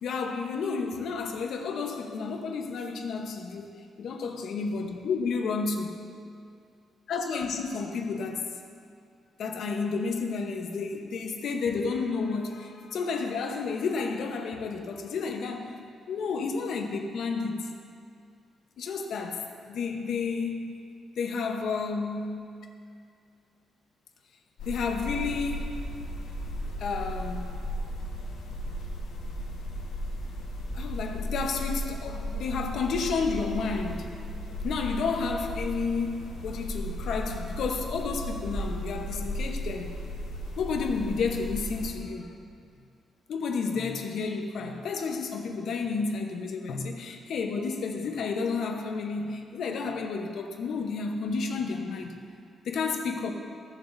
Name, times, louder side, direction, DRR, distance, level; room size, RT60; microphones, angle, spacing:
voice 1, 0.0-5.9 7.1-8.5 9.4-15.8 16.1-17.7 18.8-20.8 21.2-22.4 24.7-25.7 26.8-27.5 30.7-34.1 34.6-39.9 40.6-42.3 43.3-52.1 52.6-53.3, left 4 dB, 55° left, 3 dB, 0.9 m, -31 dB
sound 1, 24.6-41.9, equal, 90° left, 1.4 m, -35 dB
15.5 x 7.2 x 2.6 m, 2.3 s
cardioid pair, 180°, 0 cm